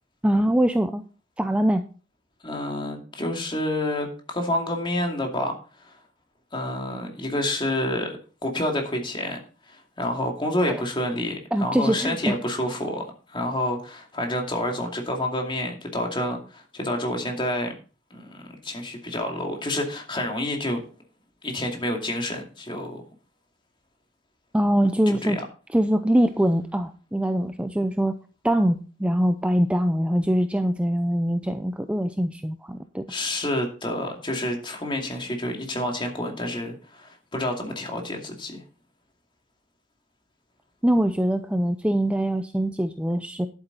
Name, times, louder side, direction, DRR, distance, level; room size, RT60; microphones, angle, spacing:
voice 1, 0.2-1.0 1.4-1.8 11.5-12.4 24.5-25.4 25.7-28.2 28.4-33.0 40.8-43.5, equal, 5° right, 8 dB, 0.5 m, -23 dB
voice 2, 2.4-5.6 5.8-6.0 6.5-9.4 9.7-17.7 18.1-20.8 21.4-23.0 25.1-25.4 33.1-38.6, left 1 dB, 25° left, 2 dB, 2.4 m, -28 dB
11.0 x 8.5 x 4.0 m, 0.36 s
head